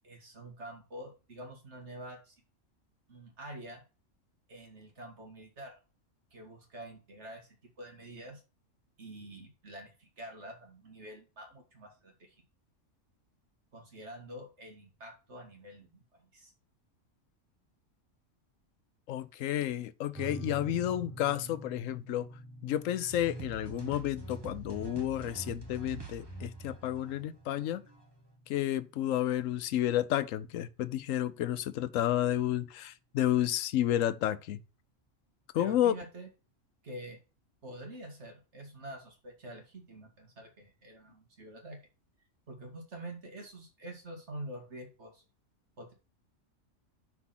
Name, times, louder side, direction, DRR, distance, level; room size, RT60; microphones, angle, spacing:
voice 1, 0.0-2.4 3.1-3.8 4.5-5.8 6.3-8.4 9.0-12.4 13.7-16.5 35.5-36.3 36.8-37.2 37.6-41.8 42.5-45.2 45.8-45.9, right 1 dB, 60° right, 2.2 m, -47 dB
voice 2, 19.1-22.3 22.6-27.8 28.5-34.6 35.5-35.9, left 12 dB, 85° left, 1.0 m, -31 dB
sound 1, 20.1-31.1, right 2 dB, ahead, 1.8 m, -49 dB
sound 2, 23.1-28.0, right 3 dB, 20° right, 1.1 m, -45 dB
6.0 x 4.6 x 5.7 m
omnidirectional pair, 1.3 m